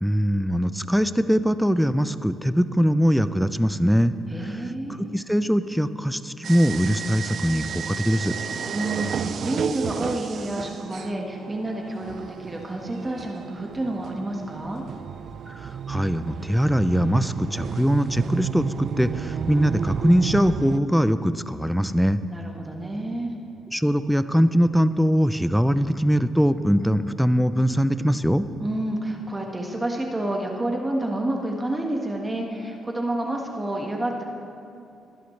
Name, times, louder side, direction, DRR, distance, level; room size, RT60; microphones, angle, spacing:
voice 1, 0.0-4.1 5.0-8.3 15.6-22.2 23.7-28.5, equal, ahead, 12 dB, 0.5 m, -22 dB
voice 2, 4.3-5.0 8.7-14.8 22.3-23.3 28.6-34.2, right 1 dB, 20° right, 1 dB, 1.5 m, -29 dB
sound 1, 6.4-20.8, right 7 dB, 55° right, 0.3 m, -32 dB
20.5 x 11.5 x 3.3 m, 2.6 s
cardioid pair, 90°, 0 cm